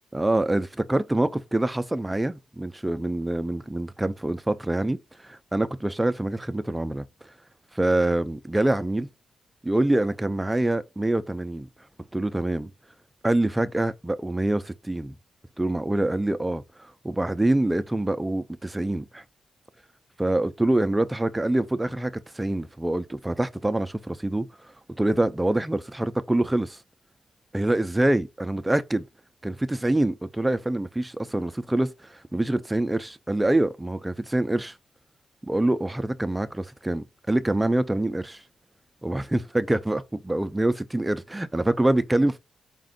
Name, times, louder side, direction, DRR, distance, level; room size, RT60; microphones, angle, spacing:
voice 1, 0.1-7.1 7.7-9.1 9.6-11.7 12.1-12.7 13.2-15.2 15.6-19.2 20.2-24.5 25.0-26.8 27.5-29.0 29.4-34.7 35.4-38.4 39.0-42.4, right 1 dB, 10° right, 0.4 m, -25 dB
5.1 x 2.4 x 3.7 m
wide cardioid pair, 145°, 0 cm